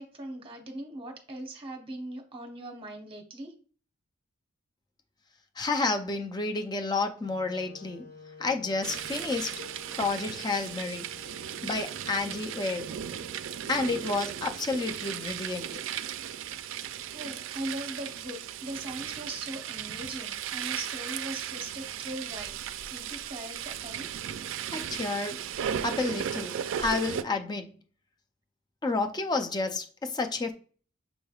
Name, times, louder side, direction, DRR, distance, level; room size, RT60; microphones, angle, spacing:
voice 1, 0.0-3.5 17.1-22.6 22.9-24.1, right 1 dB, 25° right, 0.9 m, -40 dB
voice 2, 5.6-8.1 8.4-9.6 10.0-11.1 11.6-12.9 13.7-15.7 24.7-25.4 25.8-27.7 28.8-30.5, left 3 dB, 20° left, 0.4 m, -30 dB
sound 1, 7.2-15.2, left 3 dB, 55° left, 1.3 m, -51 dB
sound 2, 8.8-27.2, right 9 dB, 70° right, 0.3 m, -36 dB
6.2 x 3.3 x 2.3 m
head